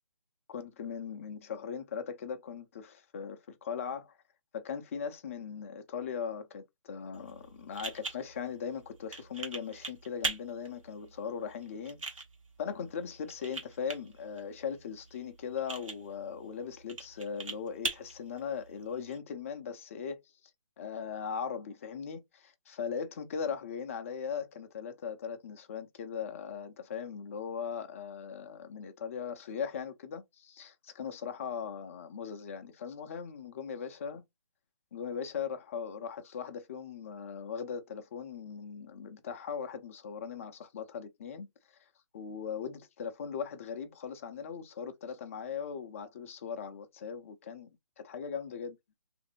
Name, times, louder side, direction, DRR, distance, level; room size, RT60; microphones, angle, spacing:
voice 1, 0.5-4.2 4.5-12.0 12.6-20.2 20.8-34.2 34.9-41.5 42.1-47.7 48.0-48.7, left 6 dB, 25° left, 0.4 m, -39 dB
sound 1, 7.1-19.2, right 3 dB, 80° right, 1.0 m, -42 dB
2.6 x 2.5 x 2.8 m
figure-of-eight pair, 145°, 17 cm